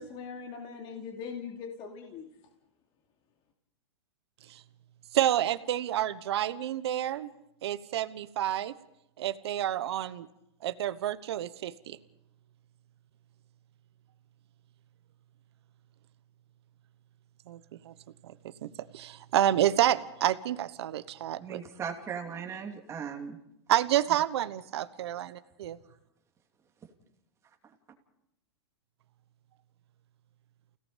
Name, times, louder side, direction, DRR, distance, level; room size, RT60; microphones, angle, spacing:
voice 1, 0.0-2.3, left 6 dB, 35° left, 2 dB, 2.8 m, -41 dB
voice 2, 5.1-7.3 7.6-8.7 9.2-10.3 10.6-12.0 17.5-17.6 17.8-17.9 18.2-18.3 18.6-21.6 23.7-25.8, right 12 dB, 75° right, 12 dB, 1.1 m, -29 dB
voice 3, 21.4-23.4 27.6-27.7, right 7 dB, 20° right, 3 dB, 2.9 m, -38 dB
29.5 x 17.5 x 5.1 m, 0.81 s
supercardioid pair, 140°, 14 cm